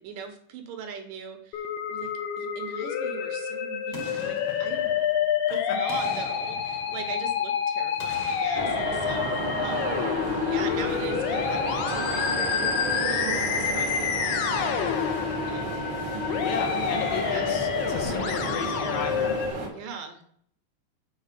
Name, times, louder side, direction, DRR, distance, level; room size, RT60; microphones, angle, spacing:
voice 1, 0.0-2.1 2.4-5.0 5.5-12.7 13.1-14.8 15.5-15.9 17.2-17.6 19.7-20.2, right 6 dB, 70° right, 5 dB, 2.4 m, -41 dB
Musical instrument, 1.5-19.5, left 8 dB, 90° left, 2.9 m, -28 dB
Boom, 3.9-5.4 5.9-7.5 8.0-10.2 10.6-10.7, left 2 dB, 55° left, 1.5 m, -44 dB
sound 1, 8.5-19.7, right 3 dB, 50° right, 1.4 m, -32 dB
voice 2, 16.4-19.9, left 6 dB, 75° left, 6 dB, 2.2 m, -35 dB
7.5 x 4.7 x 5.4 m, 0.64 s
omnidirectional pair, 4.4 m